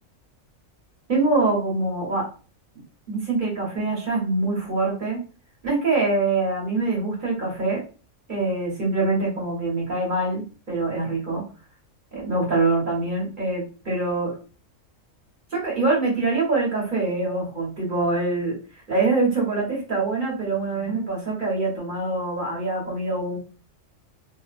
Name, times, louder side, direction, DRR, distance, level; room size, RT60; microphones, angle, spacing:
voice 1, 1.1-2.2 3.1-5.2 5.6-7.8 8.3-11.4 12.1-14.3 15.5-18.6 18.9-23.4, right 3 dB, 40° right, -4 dB, 1.2 m, -24 dB
2.7 x 2.1 x 2.5 m, 0.36 s
omnidirectional pair, 1.3 m